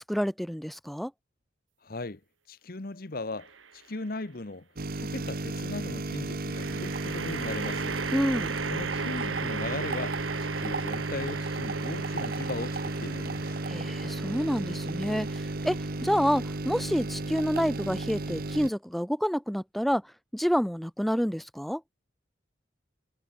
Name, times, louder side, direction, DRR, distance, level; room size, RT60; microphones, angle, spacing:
voice 1, 0.1-1.1 8.1-8.5 13.7-20.0 20.3-21.8, equal, ahead, 0.3 m, -28 dB
voice 2, 1.8-2.2 2.5-4.7 5.0-8.0 8.7-13.6, left 2 dB, 50° left, 1.1 m, -38 dB
sound 1, 3.4-4.0 6.5-17.9, right 5 dB, 90° right, 3.2 m, -38 dB
sound 2, 4.8-18.7, right 2 dB, 50° right, 1.0 m, -34 dB
head